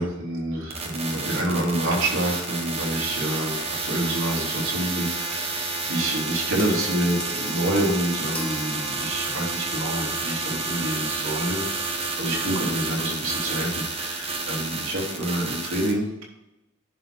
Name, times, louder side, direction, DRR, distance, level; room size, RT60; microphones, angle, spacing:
voice 1, 0.0-11.6 11.9-16.1, right 1 dB, 75° right, -3 dB, 3.3 m, -27 dB
sound 1, 0.7-15.9, right 3 dB, 30° right, 1.3 m, -30 dB
sound 2, 6.6-9.6, left 1 dB, 5° left, 0.7 m, -39 dB
11.0 x 4.6 x 6.2 m, 0.90 s
head